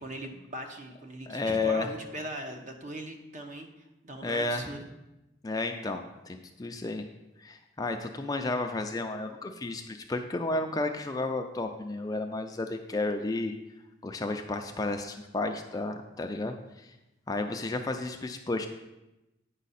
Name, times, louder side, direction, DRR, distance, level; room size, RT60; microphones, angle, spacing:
voice 1, 0.0-3.7 4.0-4.9, right 1 dB, 40° right, 4 dB, 0.9 m, -40 dB
voice 2, 1.3-1.9 4.2-4.7 5.4-7.1 7.4-13.6 14.0-16.9 17.3-18.7, left 2 dB, 20° left, 5 dB, 0.4 m, -32 dB
9.1 x 5.6 x 4.1 m, 0.96 s
head